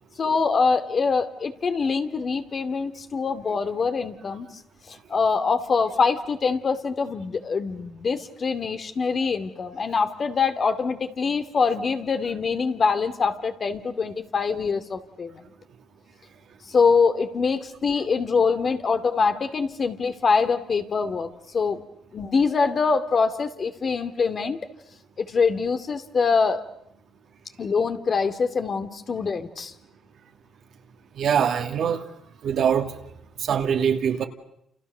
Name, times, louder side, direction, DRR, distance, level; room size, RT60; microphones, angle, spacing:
voice 1, 0.2-4.5 4.9-15.4 16.7-21.8 22.1-24.6 25.2-26.6 27.6-29.7, left 5 dB, 45° left, 2.5 m, -24 dB
voice 2, 31.2-32.0 32.4-32.9 33.4-34.2, right 8 dB, 65° right, 2.5 m, -23 dB
29.0 x 29.0 x 6.8 m
cardioid pair, 90°, 0 cm